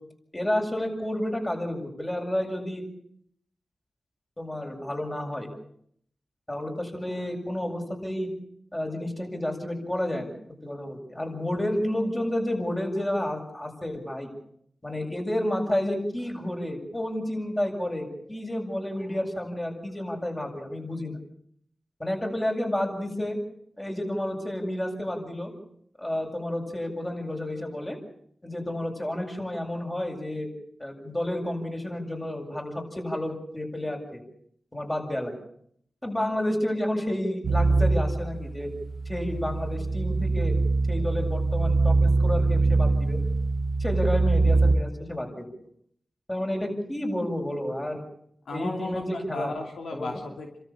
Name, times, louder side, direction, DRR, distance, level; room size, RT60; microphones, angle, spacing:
voice 1, 0.3-2.8 4.4-5.5 6.5-8.3 8.7-10.3 10.6-14.3 14.8-21.2 22.0-23.4 23.8-25.5 26.0-28.0 28.4-30.5 30.8-34.2 34.7-35.4 36.0-38.7 39.1-40.6 40.9-43.2 43.8-45.3 46.3-48.0 48.5-49.5 49.9-50.1, left 1 dB, 20° left, 2 dB, 7.5 m, -30 dB
sound 1, 37.4-44.8, right 3 dB, 75° right, 1.4 m, -23 dB
voice 2, 48.5-50.6, left 2 dB, 85° left, 3 dB, 2.8 m, -35 dB
28.5 x 13.5 x 8.8 m, 0.68 s
cardioid pair, 45°, 0 cm